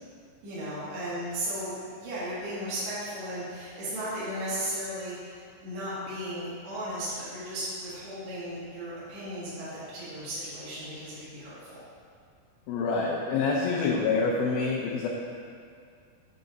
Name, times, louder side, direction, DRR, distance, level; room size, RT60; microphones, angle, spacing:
voice 1, 0.4-11.8, right 1 dB, 45° right, -11 dB, 2.6 m, -35 dB
voice 2, 12.7-15.1, left 4 dB, 80° left, -3 dB, 2.1 m, -26 dB
8.4 x 4.6 x 5.3 m, 2.2 s
omnidirectional pair, 5.1 m